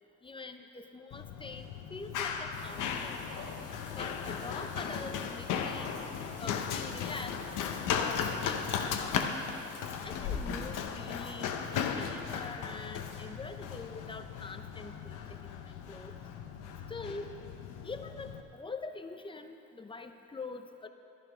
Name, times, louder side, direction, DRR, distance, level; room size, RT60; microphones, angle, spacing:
voice 1, 0.2-3.2 4.0-7.4 8.0-9.3 10.0-16.1 16.9-17.3 17.8-20.9, left 3 dB, 15° left, 7 dB, 0.8 m, -44 dB
Run, 1.1-18.4, left 7 dB, 90° left, 0.9 m, -36 dB
sound 1, 2.5-9.9, left 4 dB, 50° left, 1.7 m, -49 dB
12.5 x 11.0 x 5.0 m, 2.8 s
cardioid pair, 90°, 30 cm